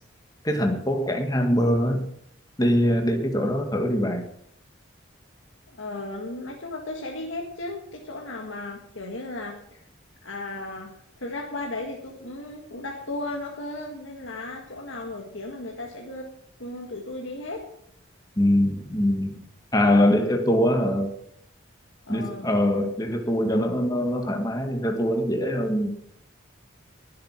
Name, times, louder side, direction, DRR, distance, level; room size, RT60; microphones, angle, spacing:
voice 1, 0.4-2.1 2.6-4.3 18.4-19.4 19.7-21.1 22.1-25.9, equal, 20° left, 4 dB, 1.7 m, -23 dB
voice 2, 5.7-9.8 10.2-10.9 11.2-16.3 16.6-17.7 22.1-22.5, left 2 dB, 75° left, 0 dB, 1.9 m, -35 dB
19.5 x 7.6 x 5.9 m, 0.72 s
head